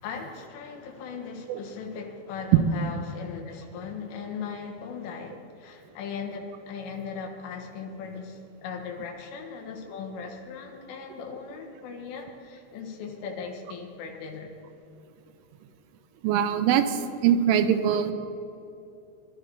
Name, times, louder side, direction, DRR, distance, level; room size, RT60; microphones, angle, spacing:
voice 1, 0.0-14.5, left 5 dB, 80° left, 2 dB, 4.1 m, -38 dB
voice 2, 16.2-18.1, right 9 dB, 85° right, 9 dB, 3.3 m, -23 dB
20.5 x 12.0 x 4.8 m, 2.8 s
omnidirectional pair, 5.6 m